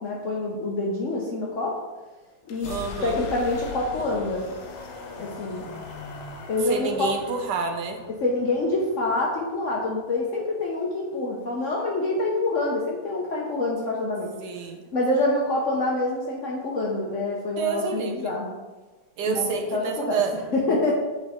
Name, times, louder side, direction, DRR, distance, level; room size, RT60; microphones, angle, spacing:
voice 1, 0.0-1.7 2.5-2.7 3.0-4.4 5.2-5.7 6.5-7.1 8.2-14.3 14.9-18.5 19.2-20.9, left 2 dB, 55° left, -3 dB, 1.1 m, -26 dB
sound 1, 2.4-10.2, left 4 dB, 85° left, 1.4 m, -40 dB
voice 2, 2.7-3.2 6.6-8.0 14.4-14.8 17.6-18.3 19.2-20.3, right 5 dB, 75° right, 4 dB, 1.4 m, -28 dB
8.6 x 3.9 x 3.6 m, 1.2 s
omnidirectional pair, 1.9 m